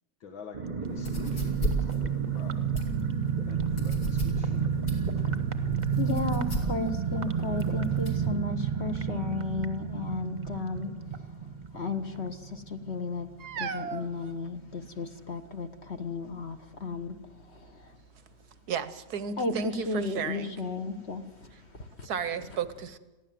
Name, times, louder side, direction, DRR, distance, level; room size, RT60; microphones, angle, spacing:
voice 1, 0.2-2.7 3.5-4.8, left 4 dB, 85° left, 2 dB, 2.4 m, -47 dB
sound 1, 0.5-12.9 13.2-13.3 13.5-13.8, right 7 dB, 30° right, 1.1 m, -30 dB
sound 2, 0.9-8.3, right 1 dB, 65° left, 4.8 m, -35 dB
voice 2, 5.9-11.3 11.7-13.3 13.6-18.0 19.4-22.1, left 3 dB, 40° left, 7 dB, 1.3 m, -34 dB
voice 3, 13.4-14.3 18.7-20.6 22.0-23.0, right 7 dB, 60° right, 13 dB, 1.3 m, -34 dB
22.0 x 15.5 x 7.6 m, 1.1 s
omnidirectional pair, 2.1 m